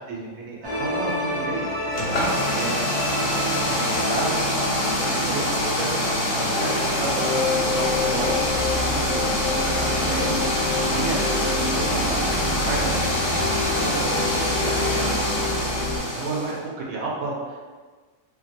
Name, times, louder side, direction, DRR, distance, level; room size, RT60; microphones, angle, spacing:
voice 1, 0.0-1.7 2.0-5.4 5.7-13.5 13.8-15.1 15.8-17.7, right 3 dB, 90° right, -4 dB, 1.0 m, -32 dB
sound 1, 0.6-16.0, left 2 dB, 25° left, 0.6 m, -28 dB
sound 2, 1.9-16.6, left 1 dB, 65° left, 1.0 m, -25 dB
2.7 x 2.5 x 2.6 m, 1.4 s
omnidirectional pair, 1.4 m